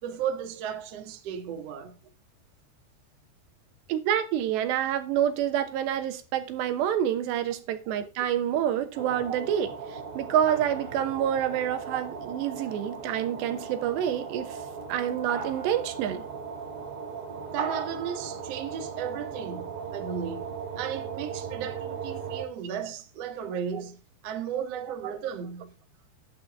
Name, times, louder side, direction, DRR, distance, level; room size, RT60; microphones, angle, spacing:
voice 1, 0.0-2.0 17.5-20.5 20.8-25.7, right 8 dB, 60° right, 1.7 m, -35 dB
voice 2, 3.9-9.7 10.2-14.6 14.9-16.2, right 10 dB, 75° right, 3.2 m, -27 dB
sound 1, 8.9-22.4, right 5 dB, 40° right, 2.7 m, -37 dB
12.0 x 10.5 x 3.6 m
omnidirectional pair, 5.1 m